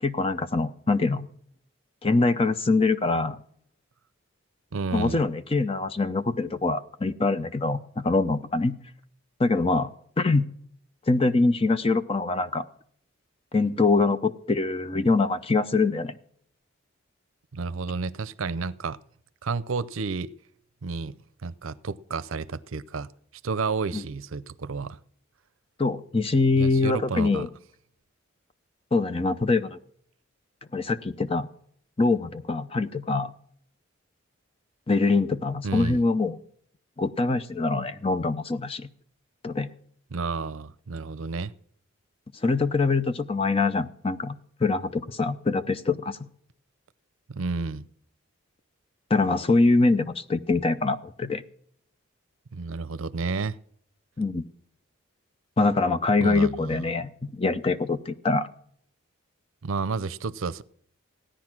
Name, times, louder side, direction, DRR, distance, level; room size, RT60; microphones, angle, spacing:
voice 1, 0.0-1.2 2.0-3.4 4.9-8.7 9.4-9.9 10.2-10.4 11.1-12.6 13.5-16.2 23.9-24.0 25.8-27.5 28.9-29.8 30.7-31.5 32.0-33.3 34.9-36.4 37.0-38.9 39.4-39.7 42.4-44.3 44.6-46.2 49.1-51.4 54.2-54.4 55.6-58.5, left 3 dB, 25° left, 0.6 m, -24 dB
voice 2, 4.7-5.2 17.5-19.0 19.4-20.3 20.8-21.2 21.4-23.1 23.4-25.0 26.6-27.5 35.6-36.0 40.1-41.5 47.3-47.9 52.5-53.6 56.2-56.9 59.6-60.6, right 4 dB, 75° right, 0.6 m, -31 dB
16.5 x 10.0 x 6.0 m
head